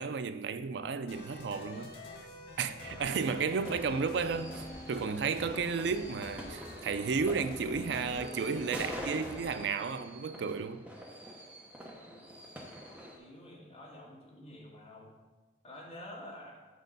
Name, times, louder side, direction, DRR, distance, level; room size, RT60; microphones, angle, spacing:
voice 1, 0.0-1.9 2.6-10.8, right 5 dB, 80° right, 0.4 m, -33 dB
sound 1, 1.1-9.6, left 1 dB, 85° left, 1.5 m, -46 dB
sound 2, 2.8-13.2, equal, 10° right, 0.8 m, -46 dB
voice 2, 3.0-3.3 11.9-12.6 12.8-15.1 15.6-16.6, left 1 dB, 35° left, 1.5 m, -50 dB
6.2 x 4.5 x 5.3 m
head